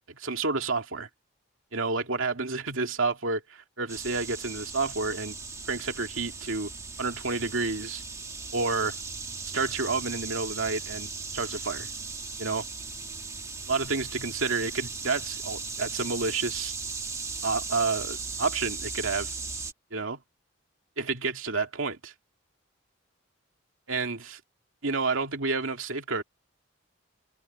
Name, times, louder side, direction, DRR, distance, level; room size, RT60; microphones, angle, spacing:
voice 1, 0.1-1.1 1.7-5.3 5.7-6.7 7.0-8.0 8.5-9.0 9.5-11.9 12.4-12.7 13.7-16.7 17.4-19.3 19.9-20.2 21.0-22.1 23.9-24.4 24.8-26.2, right 4 dB, 80° right, 2.3 m, -30 dB
sound 1, 3.9-19.7, right 4 dB, 15° right, 1.4 m, -37 dB
open air
head